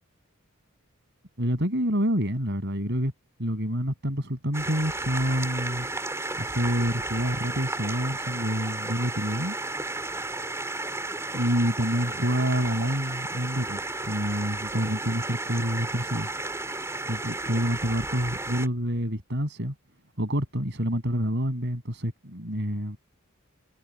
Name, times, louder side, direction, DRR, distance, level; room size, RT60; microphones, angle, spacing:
voice 1, 1.4-3.1 3.4-5.9 6.4-9.5 11.3-16.3 17.1-19.7 20.2-23.0, equal, 50° right, 7.9 m, -27 dB
sound 1, 4.5-18.7, right 2 dB, 15° right, 4.4 m, -33 dB
head